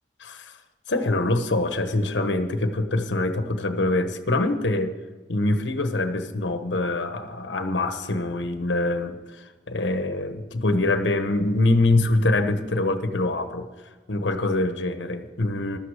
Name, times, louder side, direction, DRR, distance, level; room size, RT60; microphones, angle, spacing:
voice 1, 0.2-0.6 0.9-4.9 5.3-13.7 14.1-15.8, left 2 dB, 70° left, 8 dB, 1.2 m, -24 dB
15.0 x 12.5 x 5.0 m, 1.3 s
head